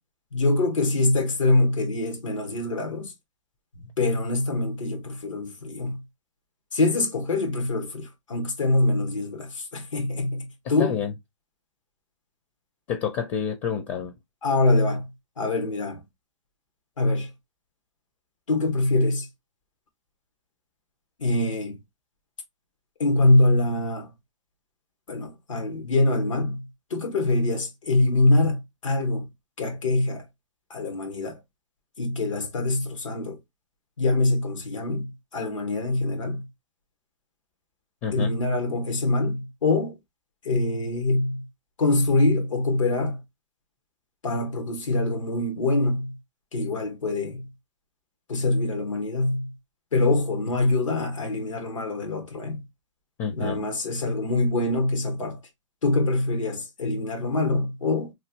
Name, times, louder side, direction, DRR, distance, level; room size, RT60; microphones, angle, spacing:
voice 1, 0.3-3.1 3.7-6.0 6.7-10.9 14.4-15.1 15.4-16.0 17.0-17.3 18.5-19.3 21.2-21.8 23.0-24.1 25.1-29.3 29.6-30.2 30.7-31.4 32.0-33.4 34.0-36.5 38.1-40.0 40.4-41.5 41.8-43.2 44.2-46.2 46.5-47.5 48.3-49.5 49.9-52.6 53.3-55.4 55.8-58.1, left 2 dB, 85° left, 1.4 m, -24 dB
voice 2, 10.8-11.1 12.9-14.1 38.0-38.3 53.2-53.6, left 7 dB, 35° left, 0.6 m, -28 dB
3.2 x 2.5 x 2.8 m
hypercardioid pair, 130°, 16 cm